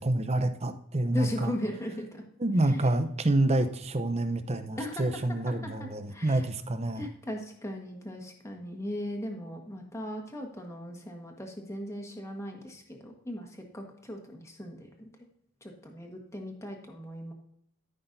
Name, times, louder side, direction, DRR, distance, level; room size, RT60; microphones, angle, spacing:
voice 1, 0.0-1.5 2.4-7.1, right 1 dB, 30° right, 9 dB, 0.7 m, -28 dB
voice 2, 1.1-2.2 2.6-2.9 4.8-5.1 5.5-6.5 7.0-13.5 13.7-15.1 15.6-17.3, left 1 dB, 15° left, 2 dB, 1.4 m, -38 dB
13.5 x 6.0 x 2.7 m, 0.72 s
head